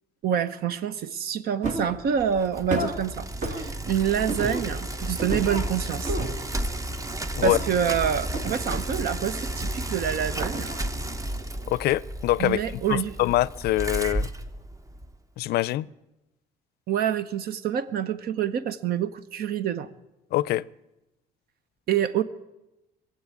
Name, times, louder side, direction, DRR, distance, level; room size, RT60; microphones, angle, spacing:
voice 1, 0.2-6.1 7.4-10.7 12.4-13.2 16.9-19.9 21.9-22.2, right 8 dB, 65° right, 0.9 m, -27 dB
sound 1, 1.6-2.0 2.7-3.0 3.4-3.7 4.3-4.7 5.2-5.7 6.1-6.5 7.4-7.8 8.3-9.1 10.4-10.9 11.2-11.3, right 1 dB, 45° right, 2.3 m, -31 dB
Bicycle, 2.0-15.1, right 1 dB, 20° right, 0.8 m, -33 dB
voice 2, 11.7-14.3 15.4-15.9 20.3-20.6, left 16 dB, 70° left, 0.4 m, -24 dB
20.5 x 7.8 x 8.4 m
cardioid pair, 110°, 17 cm